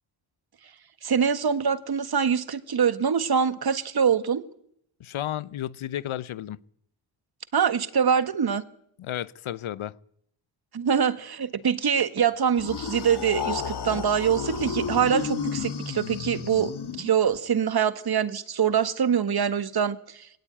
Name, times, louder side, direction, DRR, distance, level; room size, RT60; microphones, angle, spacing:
voice 1, 1.0-4.4 7.5-8.6 10.7-16.7 17.0-20.3, right 7 dB, 45° right, 1.6 m, -24 dB
voice 2, 5.0-6.6 9.0-9.9, left 12 dB, 70° left, 0.9 m, -32 dB
sound 1, 12.6-17.4, left 7 dB, 50° left, 1.8 m, -32 dB
21.0 x 17.5 x 9.1 m
cardioid pair, 80°, 50 cm